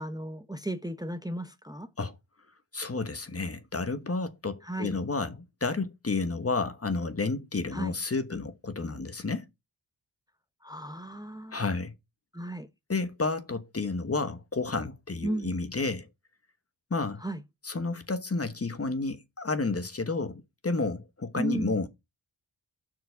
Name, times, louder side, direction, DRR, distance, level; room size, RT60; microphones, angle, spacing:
voice 1, 0.0-1.9 4.6-4.9 7.7-8.0 10.6-11.6 12.3-12.7 15.2-15.5 17.2-17.4 21.4-21.7, right 1 dB, 10° right, 0.8 m, -34 dB
voice 2, 2.7-9.5 11.5-11.9 12.9-16.1 16.9-17.2 17.6-21.9, left 3 dB, 30° left, 1.2 m, -31 dB
5.9 x 4.9 x 5.7 m
cardioid pair, 50°, 46 cm